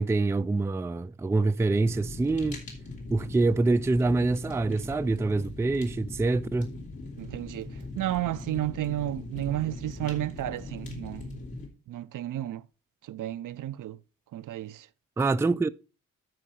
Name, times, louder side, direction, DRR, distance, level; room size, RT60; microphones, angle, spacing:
voice 1, 0.0-2.6 3.1-6.8 15.2-15.7, right 3 dB, 10° right, 0.3 m, -25 dB
Fire, 1.8-11.7, left 2 dB, 70° left, 3.0 m, -40 dB
voice 2, 7.2-7.7 8.0-11.3 11.9-12.6 13.1-14.0 14.3-14.9, right 14 dB, 60° right, 0.5 m, -32 dB
12.5 x 4.5 x 4.2 m
supercardioid pair, 45°, 35 cm